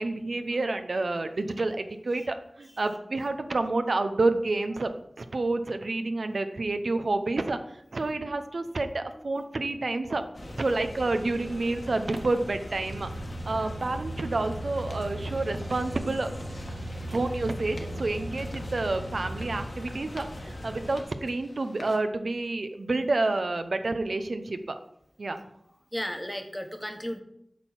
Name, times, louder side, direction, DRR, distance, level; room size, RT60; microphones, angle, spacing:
voice 1, 0.0-4.9 5.2-7.6 7.9-13.1 13.4-16.3 17.1-24.7 25.2-25.4, right 2 dB, 75° right, 8 dB, 0.7 m, -29 dB
sound 1, 10.3-21.0, left 1 dB, 50° left, 1.6 m, -40 dB
sound 2, 12.8-19.6, right 1 dB, 60° right, 3.0 m, -39 dB
sound 3, 14.8-22.0, left 1 dB, 70° left, 1.6 m, -50 dB
voice 2, 25.9-27.2, equal, 10° left, 6 dB, 1.2 m, -35 dB
8.4 x 4.5 x 7.3 m, 0.75 s
wide cardioid pair, 50°, 0 cm